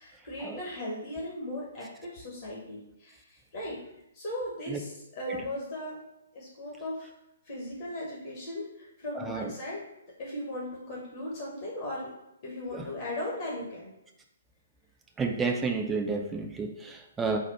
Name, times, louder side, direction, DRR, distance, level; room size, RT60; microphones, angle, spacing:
voice 1, 0.0-3.8 4.1-6.0 6.3-7.1 7.4-9.8 10.2-12.1 12.4-13.9, left 1 dB, 50° left, -5 dB, 1.2 m, -37 dB
voice 2, 9.1-9.5 12.7-12.9 15.2-17.4, right 4 dB, 10° right, 3 dB, 0.4 m, -31 dB
4.1 x 2.4 x 4.2 m, 0.85 s
figure-of-eight pair, 125°, 0 cm